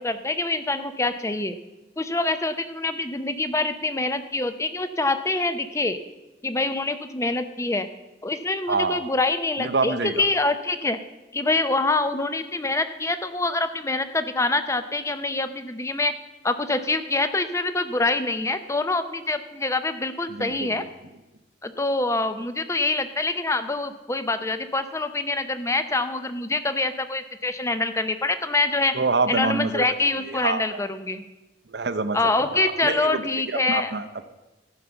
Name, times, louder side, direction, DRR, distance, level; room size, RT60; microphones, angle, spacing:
voice 1, 0.0-1.6 2.0-6.0 6.4-7.9 8.2-11.0 11.3-16.1 16.4-20.8 21.6-28.9 29.3-31.2 32.1-33.9, left 2 dB, 15° left, 11 dB, 0.6 m, -25 dB
voice 2, 8.7-9.0 9.6-10.2 20.3-20.9 28.9-29.9 30.3-30.8 31.7-33.2 33.5-34.3, right 3 dB, 65° right, 11 dB, 0.7 m, -27 dB
14.5 x 5.7 x 6.7 m, 1.0 s
head